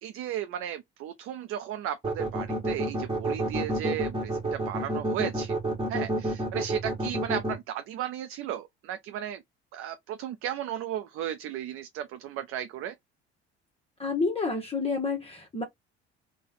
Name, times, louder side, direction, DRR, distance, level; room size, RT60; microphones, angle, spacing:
voice 1, 0.0-5.6 5.9-9.4 9.7-12.9, right 10 dB, 45° right, 0.6 m, -35 dB
sound 1, 2.0-7.5, right 1 dB, 15° right, 1.6 m, -28 dB
voice 2, 14.0-15.6, left 4 dB, 20° left, 1.1 m, -29 dB
3.9 x 2.3 x 3.9 m
figure-of-eight pair, 60°, 33 cm